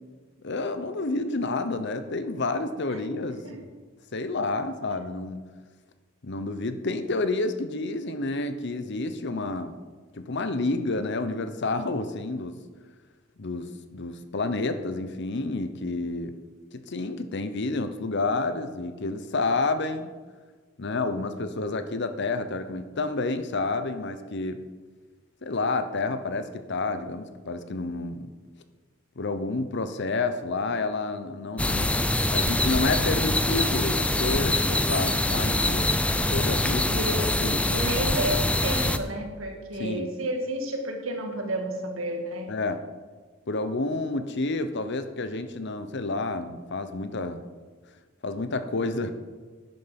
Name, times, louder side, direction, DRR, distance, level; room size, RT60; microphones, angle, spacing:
voice 1, 0.4-3.7 4.1-5.4 6.2-9.8 10.1-12.6 13.4-16.3 16.7-20.1 20.8-24.6 25.4-28.3 29.2-31.9 32.3-36.9 37.4-37.6 39.8-40.1 42.5-42.8 43.5-47.4 48.2-49.1, left 3 dB, 55° left, 10 dB, 0.8 m, -29 dB
sound 1, 31.6-39.0, left 1 dB, 5° left, 0.5 m, -24 dB
voice 2, 36.9-37.3 37.7-42.5, right 1 dB, 75° right, 3 dB, 2.0 m, -31 dB
11.0 x 9.3 x 5.9 m, 1.4 s
head